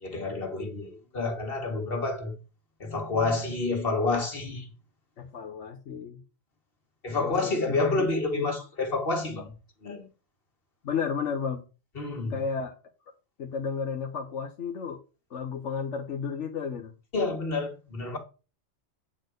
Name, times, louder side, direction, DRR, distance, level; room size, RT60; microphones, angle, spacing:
voice 1, 0.0-2.3 2.8-4.7 7.0-9.5 9.8-10.1 12.0-12.4 17.1-18.2, left 3 dB, 55° left, 2.2 m, -29 dB
voice 2, 5.2-6.2 7.2-8.1 8.3-8.5 10.8-11.6 12.3-12.7 13.4-15.0 15.3-16.9, left 6 dB, 85° left, 1.4 m, -32 dB
9.1 x 4.4 x 6.5 m
omnidirectional pair, 1.2 m